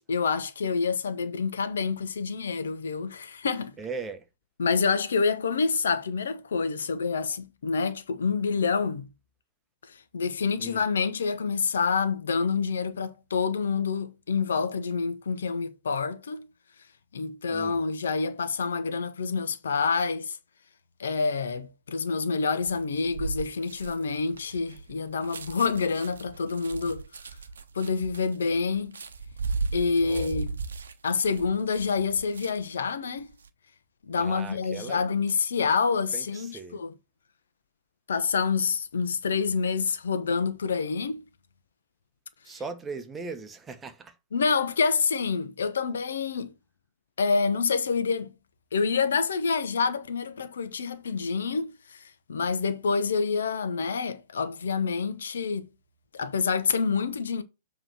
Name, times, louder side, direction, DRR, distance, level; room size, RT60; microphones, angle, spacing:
voice 1, 0.0-3.8 4.6-9.1 9.9-16.5 17.1-20.4 21.0-27.0 27.7-28.9 29.7-30.6 31.0-33.3 34.0-36.9 38.1-41.2 44.3-46.5 47.2-48.3 48.7-55.6 56.1-57.4, left 5 dB, 70° left, 0.9 m, -27 dB
voice 2, 3.8-4.3 10.6-10.8 17.5-17.9 30.0-30.4 34.2-35.2 36.1-36.8 42.4-44.2, right 4 dB, 15° right, 1.0 m, -39 dB
sound 1, 22.6-32.8 33.2-33.5, right 4 dB, 70° right, 0.8 m, -37 dB
7.5 x 3.2 x 6.2 m
figure-of-eight pair, 105°, 0 cm